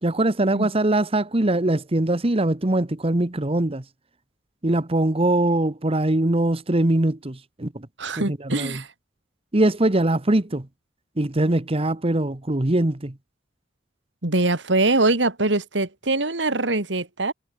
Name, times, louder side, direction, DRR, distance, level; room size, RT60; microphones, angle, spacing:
voice 1, 0.0-3.8 4.6-7.9 8.1-8.8 9.5-10.7 11.2-13.1, right 1 dB, 35° right, 1.2 m, -22 dB
voice 2, 8.0-8.9 14.2-17.3, right 2 dB, 85° right, 2.9 m, -23 dB
head